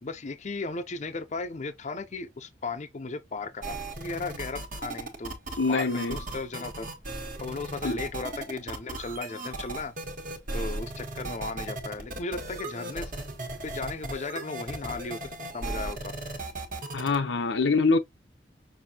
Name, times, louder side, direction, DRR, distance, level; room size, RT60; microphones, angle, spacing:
voice 1, 0.0-5.4 5.7-6.9 7.4-9.9 10.5-13.1 13.6-16.1, left 3 dB, 40° left, 0.5 m, -36 dB
sound 1, 3.6-17.2, right 2 dB, 50° right, 1.3 m, -37 dB
voice 2, 5.6-6.2 7.8-8.0 16.9-18.0, left 4 dB, 90° left, 0.7 m, -24 dB
5.9 x 2.7 x 2.8 m
head